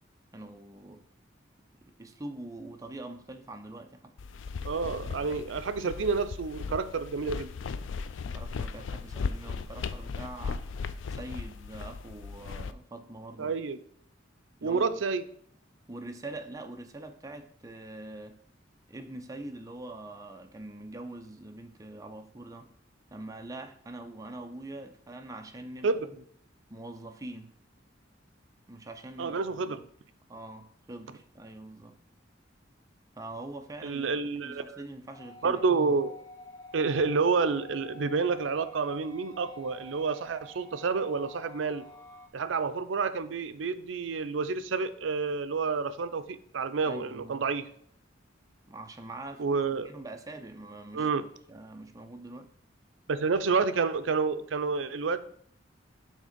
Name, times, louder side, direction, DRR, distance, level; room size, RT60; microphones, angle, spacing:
voice 1, 0.3-1.0 1.8-4.1 8.3-10.8 11.0-13.5 14.6-15.0 15.9-18.4 18.9-22.7 23.1-26.2 26.7-27.5 28.7-29.9 30.3-32.0 33.1-34.1 34.4-35.6 46.9-47.4 48.7-49.6 49.8-52.5, right 2 dB, 20° right, 0.6 m, -44 dB
sound 1, 4.2-12.7, left 5 dB, 75° left, 0.4 m, -37 dB
voice 2, 4.6-7.5 13.4-13.8 14.6-15.2 25.8-26.0 29.2-29.8 33.8-34.8 35.4-36.1 36.7-41.8 42.3-47.7 49.4-49.9 50.9-51.2 53.1-55.2, right 4 dB, 75° right, 0.5 m, -29 dB
sound 2, 35.1-42.3, left 2 dB, 25° left, 1.0 m, -49 dB
6.4 x 3.7 x 5.1 m
head